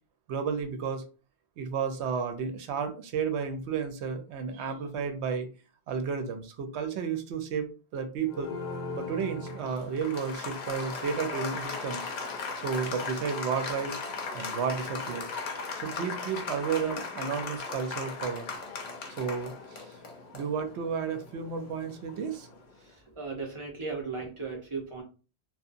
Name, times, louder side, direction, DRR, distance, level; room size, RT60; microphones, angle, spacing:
voice 1, 0.3-1.0 1.6-5.5 5.9-8.5 8.9-12.1 12.6-14.0 14.3-18.5 19.2-19.9 20.3-22.5, right 6 dB, 90° right, 7 dB, 0.9 m, -32 dB
Applause, 8.3-22.6, left 4 dB, 50° left, 0.6 m, -38 dB
voice 2, 22.9-25.0, right 4 dB, 30° right, -1 dB, 0.7 m, -36 dB
2.7 x 2.2 x 2.5 m, 0.34 s
omnidirectional pair, 1.1 m